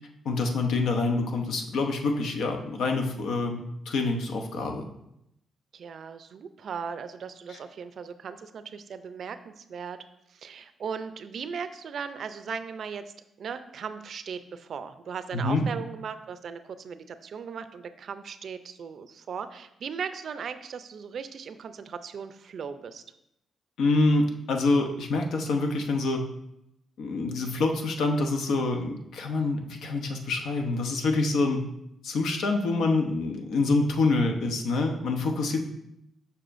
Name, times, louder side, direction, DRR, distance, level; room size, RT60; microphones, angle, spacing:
voice 1, 0.2-4.9 7.5-7.6 15.3-15.6 23.8-26.2 27.0-31.6 32.0-35.6, left 3 dB, 80° left, 4 dB, 0.8 m, -26 dB
voice 2, 5.7-10.0 10.3-13.0 13.4-23.0, right 6 dB, 60° right, 11 dB, 0.4 m, -37 dB
6.7 x 5.6 x 2.5 m, 0.80 s
cardioid pair, 100°, 0 cm